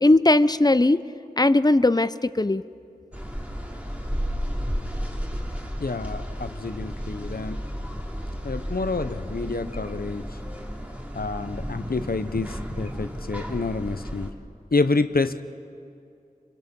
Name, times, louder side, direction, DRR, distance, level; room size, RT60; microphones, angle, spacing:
voice 1, 0.0-1.0 1.4-2.6, left 2 dB, 25° left, 14 dB, 0.7 m, -18 dB
sound 1, 3.1-14.3, equal, 10° right, 2.8 m, -33 dB
voice 2, 5.8-7.6 8.4-10.3 11.1-14.3 14.7-15.4, left 3 dB, 70° left, 11 dB, 0.9 m, -28 dB
28.5 x 24.0 x 5.4 m, 2.6 s
wide cardioid pair, 40°, 16 cm